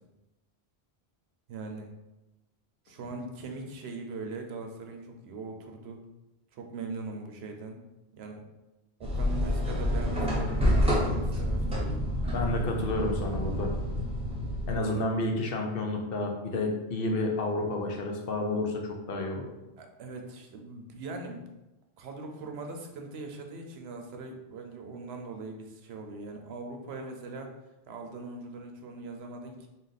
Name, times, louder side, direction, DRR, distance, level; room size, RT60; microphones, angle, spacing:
voice 1, 1.5-1.9 2.9-6.0 6.5-7.8 8.1-8.4 9.0-12.1 14.7-15.1 19.8-21.4 22.0-27.5 27.9-29.7, right 3 dB, 75° right, 3 dB, 0.9 m, -41 dB
sound 1, 9.0-14.8, equal, 5° right, 0.9 m, -28 dB
voice 2, 12.3-13.7 14.7-19.5, left 2 dB, 65° left, 2 dB, 0.8 m, -30 dB
3.9 x 2.5 x 4.0 m, 0.99 s
omnidirectional pair, 1.1 m